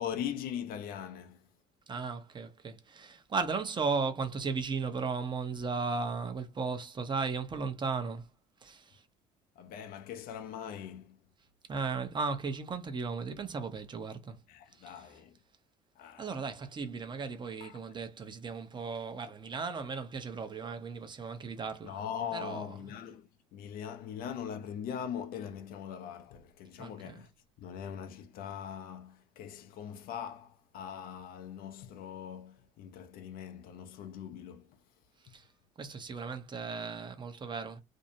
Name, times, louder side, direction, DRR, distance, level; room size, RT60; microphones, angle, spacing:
voice 1, 0.0-1.4 9.6-11.2 14.5-15.4 16.0-16.4 17.6-17.8 21.8-27.3 27.6-34.8, left 8 dB, 65° left, 0.5 m, -41 dB
voice 2, 1.9-8.2 8.6-9.0 11.7-14.4 14.8-14.9 16.2-22.0 22.3-22.7 26.8-27.2 35.3-35.4 35.8-37.8, right 4 dB, 30° right, 0.7 m, -36 dB
2.6 x 2.0 x 2.7 m
supercardioid pair, 85°, 16 cm